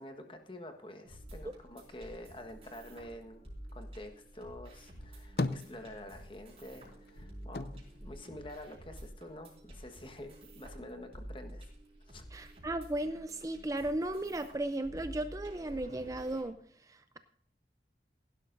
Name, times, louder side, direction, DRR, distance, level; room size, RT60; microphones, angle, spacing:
voice 1, 0.0-3.4 3.7-11.6 12.0-12.2, left 1 dB, 30° left, 5 dB, 1.3 m, -48 dB
sound 1, 1.0-16.4, right 1 dB, 35° right, 4.8 m, -50 dB
sound 2, 4.9-6.4 6.7-9.1 9.5-10.4, left 2 dB, 60° left, 0.6 m, -39 dB
voice 2, 12.3-16.6 16.9-17.2, right 1 dB, 20° right, 10 dB, 0.4 m, -35 dB
16.5 x 11.5 x 2.6 m, 0.64 s
head